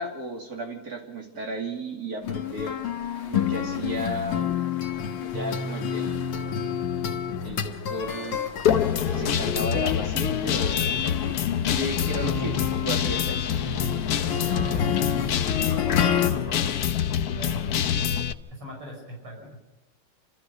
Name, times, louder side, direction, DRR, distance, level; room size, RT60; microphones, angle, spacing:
voice 1, 0.0-2.7 3.3-4.5 5.2-6.3 7.4-8.4 9.1-11.3 11.7-12.6 12.8-13.4, right 1 dB, 40° right, 2 dB, 3.1 m, -34 dB
sound 1, 2.2-16.3, left 8 dB, 75° left, 2.3 m, -29 dB
Guitar, 8.6-18.3, left 9 dB, 60° left, 1.1 m, -26 dB
voice 2, 14.2-14.9 15.2-16.8 17.3-18.0 18.5-19.6, equal, 85° right, 0 dB, 6.4 m, -40 dB
29.0 x 13.5 x 6.7 m, 1.1 s
omnidirectional pair, 2.4 m